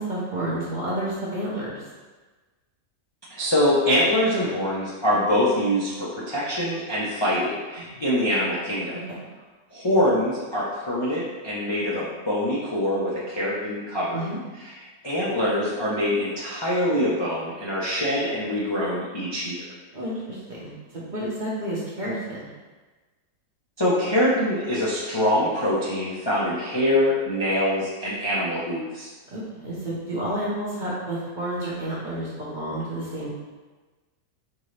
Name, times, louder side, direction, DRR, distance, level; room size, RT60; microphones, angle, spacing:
voice 1, 0.0-1.8 7.7-7.8 14.1-14.4 19.9-22.5 29.3-33.3, right 1 dB, 40° right, -7 dB, 0.8 m, -30 dB
voice 2, 3.3-9.0 9.7-14.2 14.6-14.7 15.0-19.6 23.8-29.1, left 1 dB, 35° left, -9 dB, 0.4 m, -24 dB
4.4 x 2.7 x 3.2 m, 1.3 s
omnidirectional pair, 1.5 m